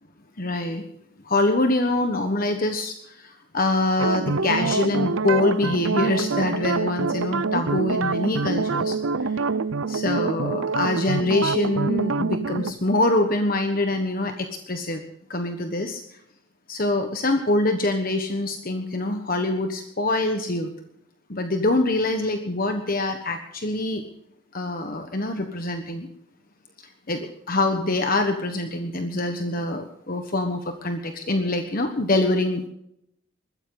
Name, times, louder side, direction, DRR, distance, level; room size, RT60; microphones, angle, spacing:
voice 1, 0.4-0.8 1.2-9.4 9.9-15.0 15.3-16.0 16.7-20.7 21.3-24.0 24.5-26.1 26.8-32.6, left 2 dB, 45° left, 6 dB, 1.3 m, -25 dB
sound 1, 4.0-12.7, right 4 dB, 70° right, 0.7 m, -25 dB
21.5 x 14.5 x 4.0 m, 0.74 s
head